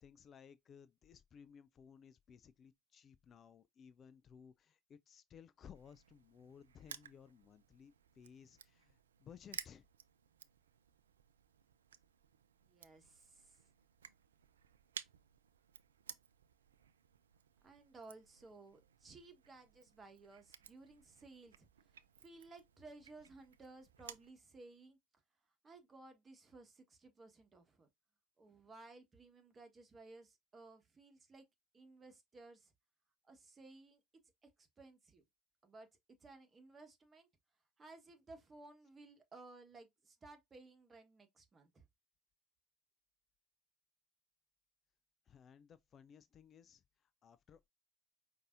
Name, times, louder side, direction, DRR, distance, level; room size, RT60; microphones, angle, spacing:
voice 1, 0.0-9.9 45.3-47.7, left 7 dB, 40° left, 0.3 m, -59 dB
Crushing, 5.7-24.3, right 8 dB, 80° right, 0.3 m, -56 dB
voice 2, 12.7-13.6 17.6-21.7 22.2-25.0 25.6-27.9 28.4-31.5 31.7-32.7 33.2-34.0 34.6-35.2 35.6-35.9 36.2-37.3 37.8-41.9, right 3 dB, 25° right, 1.2 m, -58 dB
5.2 x 2.7 x 2.5 m
figure-of-eight pair, 70°, 0 cm